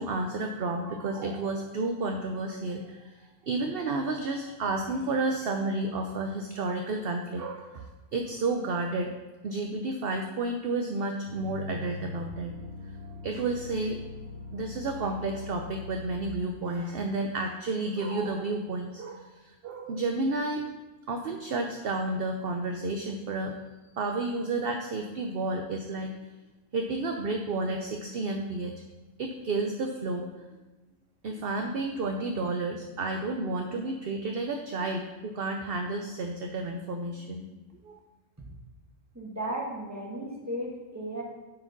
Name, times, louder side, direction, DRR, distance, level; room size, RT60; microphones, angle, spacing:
voice 1, 0.0-7.9 8.1-9.1 9.4-12.5 12.8-13.0 13.2-14.0 14.5-20.7 21.1-23.5 24.0-26.1 26.7-28.7 29.2-30.3 31.2-37.5 37.8-38.0, right 2 dB, 55° right, 4 dB, 0.8 m, -31 dB
sound 1, 11.3-16.5, left 4 dB, 85° right, 1.7 m, -41 dB
voice 2, 39.1-41.2, right 1 dB, 10° right, -4 dB, 1.8 m, -35 dB
7.6 x 4.8 x 5.8 m, 1.2 s
omnidirectional pair, 1.3 m